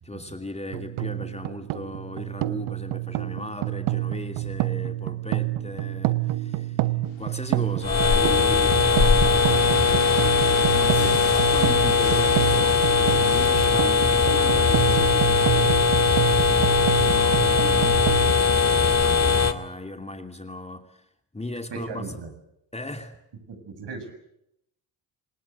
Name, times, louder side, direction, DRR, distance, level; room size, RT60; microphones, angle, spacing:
voice 1, 0.0-10.1 11.0-15.8 17.0-18.0 18.7-21.0 21.3-22.2 22.7-23.2, left 2 dB, 15° left, 6 dB, 2.7 m, -37 dB
sound 1, 0.7-18.3, right 17 dB, 80° right, 1.1 m, -28 dB
sound 2, 7.1-15.0, left 10 dB, 70° left, 3.0 m, -39 dB
sound 3, 7.8-19.5, left 5 dB, 30° left, 2.3 m, -20 dB
voice 2, 19.0-19.4 21.7-22.3 23.5-24.1, right 4 dB, 55° right, 7 dB, 7.3 m, -37 dB
27.0 x 19.5 x 8.1 m, 0.79 s
supercardioid pair, 60°, 49 cm